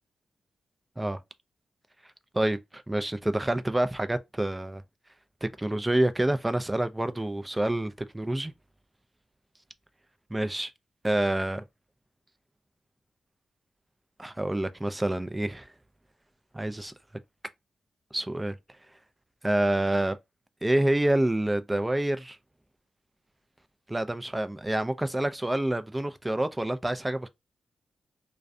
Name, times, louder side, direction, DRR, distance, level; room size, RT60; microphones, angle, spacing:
voice 1, 2.3-4.8 5.4-8.5 10.3-10.7 11.0-11.6 14.2-15.7 16.5-16.9 18.1-18.6 19.4-20.2 20.6-22.4 23.9-27.3, right 1 dB, 15° right, 0.4 m, -27 dB
2.3 x 2.1 x 2.5 m
supercardioid pair, 50°, 0 cm